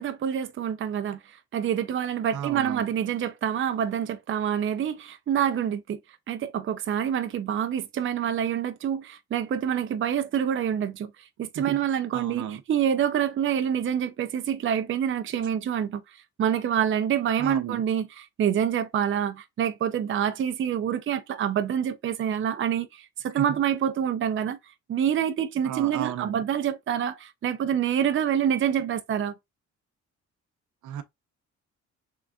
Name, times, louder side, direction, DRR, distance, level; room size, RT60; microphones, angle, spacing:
voice 1, 0.0-6.0 6.3-11.1 11.4-16.0 16.4-24.6 24.9-29.3, right 9 dB, 40° right, 0.6 m, -27 dB
voice 2, 2.3-2.9 11.5-11.8 12.1-12.6 17.4-17.8 23.3-23.6 25.6-26.4 30.8-31.0, right 10 dB, 75° right, 0.8 m, -33 dB
3.9 x 3.4 x 2.4 m
cardioid pair, 90°, 30 cm